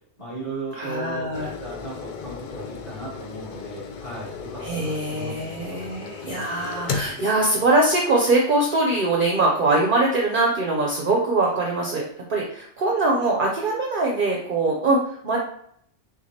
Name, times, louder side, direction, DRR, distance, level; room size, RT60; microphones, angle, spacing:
voice 1, 0.2-5.8, right 2 dB, 30° left, -12 dB, 1.8 m, -36 dB
voice 2, 0.8-1.5 4.6-12.0 12.3-15.4, right 2 dB, 50° right, -1 dB, 0.8 m, -22 dB
sound 1, 1.3-8.3 8.9-9.0, left 5 dB, 60° left, 0.5 m, -35 dB
6.0 x 2.5 x 2.8 m, 0.68 s
omnidirectional pair, 1.2 m